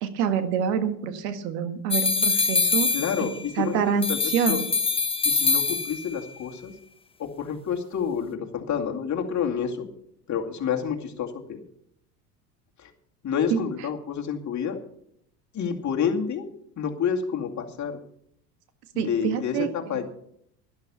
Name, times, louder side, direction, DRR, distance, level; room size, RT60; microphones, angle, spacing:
voice 1, 0.0-2.9 3.2-3.3 3.6-4.1 4.3-4.6 13.5-13.6 19.0-19.7, right 8 dB, 80° right, 9 dB, 1.8 m, -26 dB
sound 1, 1.9-3.6 4.0-6.2, left 4 dB, 10° left, 0.8 m, -24 dB
voice 2, 2.9-4.2 4.5-4.7 5.2-6.7 7.2-9.9 10.3-11.6 12.8-12.9 13.2-14.8 15.5-16.5 16.8-18.0 18.9-20.1, left 7 dB, 35° left, 2 dB, 2.5 m, -29 dB
12.0 x 12.0 x 5.6 m, 0.70 s
hypercardioid pair, 85°, 47 cm